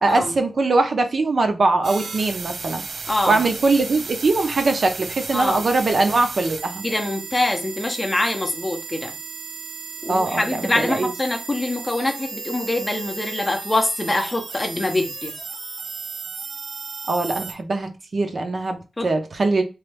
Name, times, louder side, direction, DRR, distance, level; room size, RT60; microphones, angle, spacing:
voice 1, 0.0-2.8 3.3-6.8 10.1-11.1 17.1-19.6, right 3 dB, 45° right, 0.5 m, -21 dB
sound 1, 1.8-17.5, right 4 dB, 85° right, 0.6 m, -34 dB
voice 2, 3.1-3.4 5.3-5.6 6.8-9.1 10.0-15.4 19.0-19.1, left 2 dB, 20° left, 0.5 m, -24 dB
3.0 x 2.2 x 3.2 m
wide cardioid pair, 160°, 0 cm